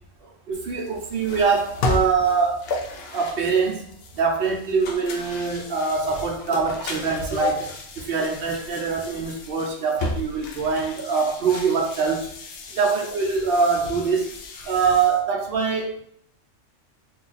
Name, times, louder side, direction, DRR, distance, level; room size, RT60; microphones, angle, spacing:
voice 1, 0.2-2.7 3.1-12.3 12.7-14.3 14.6-16.0, right 5 dB, 55° right, 1 dB, 0.8 m, -24 dB
sound 1, 0.5-15.2, left 3 dB, 60° left, 0.7 m, -34 dB
2.7 x 2.4 x 3.9 m, 0.68 s
omnidirectional pair, 1.3 m